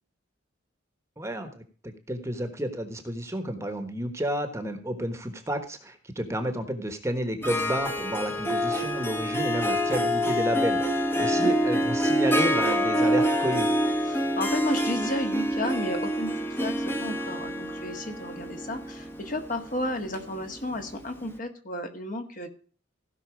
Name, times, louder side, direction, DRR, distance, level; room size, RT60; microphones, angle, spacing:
voice 1, 1.2-13.7, equal, 15° right, 7 dB, 1.3 m, -31 dB
Harp, 7.4-21.0, equal, 10° left, 1.1 m, -27 dB
voice 2, 14.0-22.5, left 1 dB, 40° left, 5 dB, 1.7 m, -33 dB
16.0 x 5.8 x 5.0 m, 0.41 s
head